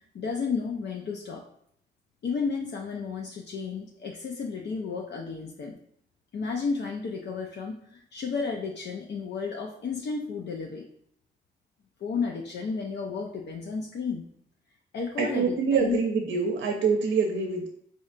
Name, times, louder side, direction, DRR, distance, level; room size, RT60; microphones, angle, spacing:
voice 1, 0.1-1.4 2.2-5.8 6.3-10.8 12.0-14.2 14.9-16.0, left 5 dB, 65° left, 0 dB, 0.5 m, -32 dB
voice 2, 15.2-17.7, right 5 dB, 85° right, 2 dB, 0.5 m, -25 dB
4.3 x 2.7 x 2.4 m, 0.67 s
cardioid pair, 55°, 20 cm